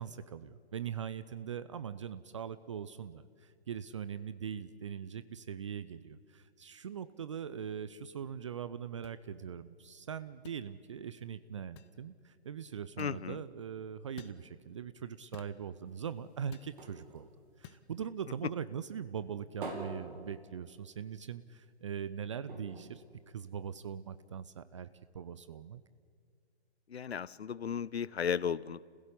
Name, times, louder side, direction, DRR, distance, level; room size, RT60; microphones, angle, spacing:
voice 1, 0.0-17.3 17.6-24.9 25.1-25.8, right 8 dB, 30° right, 14 dB, 0.5 m, -41 dB
sound 1, 9.0-9.2 10.4-10.6 11.8-12.0 13.0-13.2 14.2-14.4 15.3-15.6 16.5-16.7 17.6-17.8, left 10 dB, 25° left, 1.0 m, -52 dB
voice 2, 13.0-13.4 26.9-28.8, left 7 dB, 70° left, 20 dB, 0.7 m, -35 dB
sound 2, 15.9-18.5 18.9-21.1 21.5-21.6 21.9-22.0 22.4-24.0 24.6-24.7, right 2 dB, 50° right, 4.4 m, -47 dB
30.0 x 16.0 x 8.5 m, 2.1 s
figure-of-eight pair, 130°, 33 cm